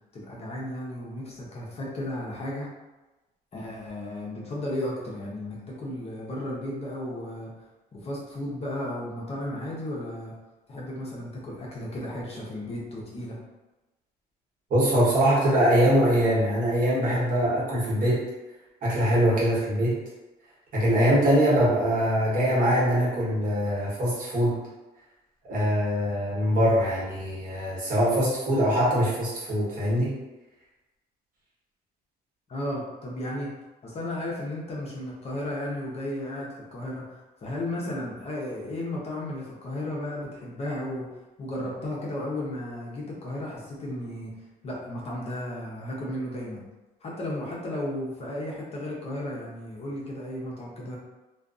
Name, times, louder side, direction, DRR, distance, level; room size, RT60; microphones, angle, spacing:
voice 1, 0.1-2.7 3.5-7.5 7.9-10.3 10.7-13.4 32.5-33.5 33.8-41.1 41.4-44.3 44.6-46.6 47.0-51.0, left 1 dB, 40° left, -4 dB, 0.7 m, -34 dB
voice 2, 14.7-18.2 18.8-20.0 20.7-24.6 25.5-30.2, equal, 55° right, -7 dB, 1.1 m, -23 dB
2.4 x 2.3 x 2.4 m, 1.1 s
cardioid pair, 110°, 17 cm